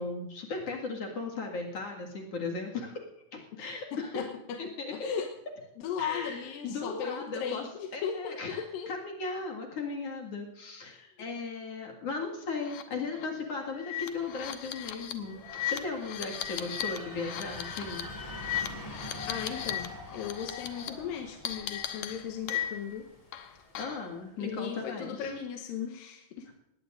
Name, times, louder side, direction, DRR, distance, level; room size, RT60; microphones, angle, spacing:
voice 1, 0.0-3.1 3.3-4.1 4.6-5.1 6.0-7.6 7.9-10.9 11.2-18.0 23.8-25.3 26.5-26.6, left 4 dB, 50° left, 0 dB, 2.7 m, -37 dB
voice 2, 3.6-4.6 4.9-5.3 5.8-8.9 10.8-11.1 19.3-23.0 24.4-26.5, left 7 dB, 90° left, 3 dB, 2.7 m, -37 dB
sound 1, 12.6-12.8 13.1-13.3 13.8-19.9 20.1-20.9 21.5-23.0 23.3-24.1, left 10 dB, 65° left, 1.9 m, -37 dB
sound 2, 14.1-24.0, left 2 dB, 20° left, 1.1 m, -45 dB
19.0 x 17.5 x 2.6 m, 0.88 s
omnidirectional pair, 4.0 m